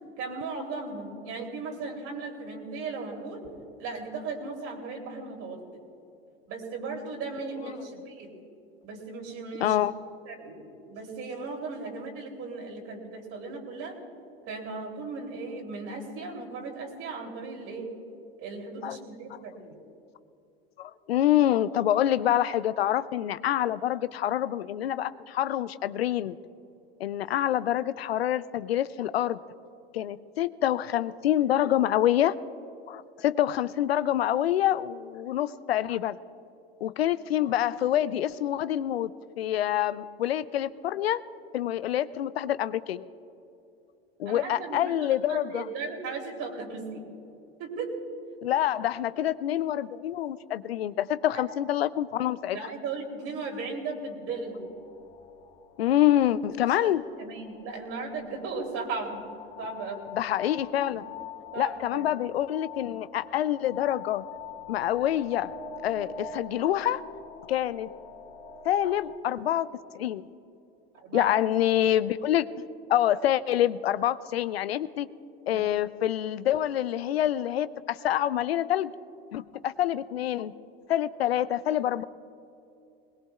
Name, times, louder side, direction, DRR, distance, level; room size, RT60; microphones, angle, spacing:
voice 1, 0.2-3.5 3.8-5.8 6.5-8.3 8.8-9.8 10.2-14.0 14.5-17.9 18.4-19.8 44.2-47.0 47.6-47.9 51.3-51.4 52.5-54.6 56.6-59.2 59.6-60.1 60.9-61.0 61.5-62.1 70.9-71.3 75.5-75.6, right 4 dB, 50° right, 1 dB, 3.1 m, -37 dB
voice 2, 9.6-9.9 18.8-19.0 20.8-26.3 27.0-29.4 29.9-32.4 32.9-36.2 36.8-39.1 39.4-41.2 41.5-43.0 44.2-45.7 48.4-52.6 55.8-57.0 60.1-61.0 61.6-64.2 64.7-65.5 65.8-67.0 67.5-67.9 68.6-69.7 69.9-70.2 71.1-72.5 72.9-75.1 75.5-78.9 79.3-80.5 80.9-82.0, left 12 dB, 85° left, 16 dB, 0.5 m, -26 dB
sound 1, 54.4-69.2, left 6 dB, 65° left, 2.0 m, -45 dB
20.5 x 20.0 x 2.4 m, 2.7 s
hypercardioid pair, 85°, 30 cm